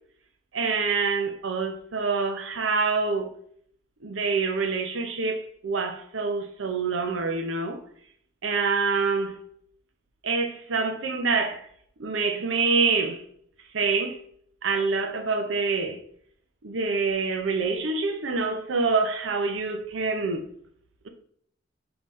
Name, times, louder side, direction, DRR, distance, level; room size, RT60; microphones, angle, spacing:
voice 1, 0.5-3.3 4.0-7.8 8.4-9.4 10.2-11.6 12.0-13.2 13.7-14.2 14.6-16.0 16.6-20.4, right 4 dB, 80° right, 0.7 m, -26 dB
5.3 x 3.0 x 3.1 m
head